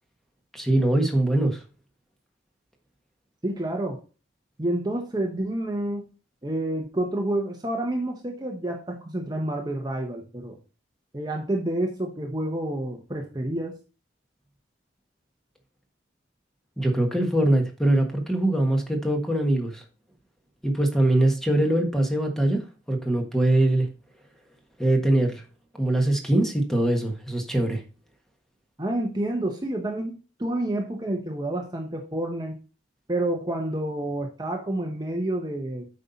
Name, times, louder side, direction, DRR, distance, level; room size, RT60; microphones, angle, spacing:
voice 1, 0.5-1.6 16.8-19.8 20.6-23.9 24.8-25.4 25.8-27.8, right 1 dB, ahead, 1.4 m, -22 dB
voice 2, 3.4-4.0 4.6-6.1 6.4-10.6 11.1-13.8 28.8-32.6 33.1-35.9, right 1 dB, 20° right, 1.0 m, -29 dB
8.2 x 5.5 x 4.0 m
head